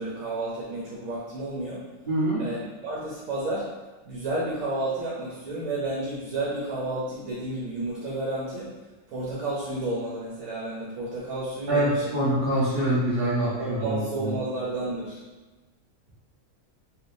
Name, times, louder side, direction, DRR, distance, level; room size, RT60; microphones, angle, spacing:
voice 1, 0.0-1.8 2.4-3.7 4.0-8.8 9.1-12.2 13.6-15.2, right 2 dB, 85° right, -6 dB, 1.1 m, -31 dB
voice 2, 2.1-2.5 11.7-14.3, right 1 dB, 40° right, -8 dB, 0.9 m, -25 dB
3.4 x 2.6 x 2.5 m, 1.2 s
omnidirectional pair, 1.4 m